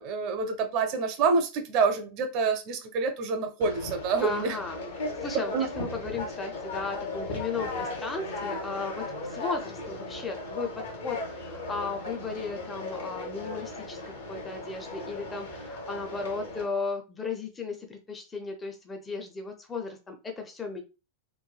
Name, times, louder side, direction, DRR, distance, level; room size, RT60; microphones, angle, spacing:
voice 1, 0.0-4.6 5.5-5.7, right 4 dB, 40° right, 0.5 m, -27 dB
Conversation, 3.6-16.7, left 2 dB, 65° left, 0.8 m, -37 dB
voice 2, 4.2-20.8, left 4 dB, 15° left, 0.5 m, -35 dB
3.1 x 2.2 x 2.3 m
figure-of-eight pair, 90°, 0 cm